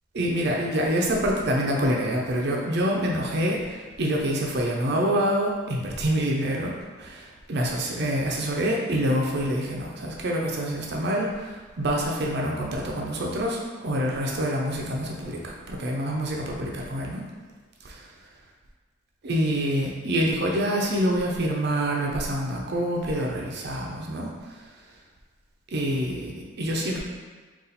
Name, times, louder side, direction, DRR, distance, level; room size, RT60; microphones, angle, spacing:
voice 1, 0.1-6.7 7.0-17.2 17.8-18.0 19.2-24.6 25.7-27.0, equal, 55° right, -1 dB, 0.6 m, -26 dB
4.0 x 2.4 x 4.0 m, 1.4 s
head